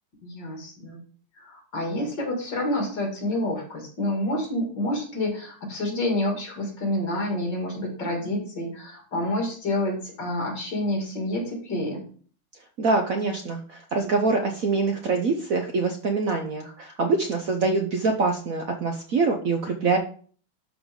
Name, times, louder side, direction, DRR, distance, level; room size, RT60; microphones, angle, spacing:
voice 1, 0.2-1.0 1.4-12.0, left 1 dB, 60° left, 0 dB, 3.1 m, -28 dB
voice 2, 12.8-20.0, right 4 dB, 60° right, 4 dB, 0.9 m, -24 dB
12.0 x 4.0 x 3.7 m, 0.44 s
omnidirectional pair, 2.2 m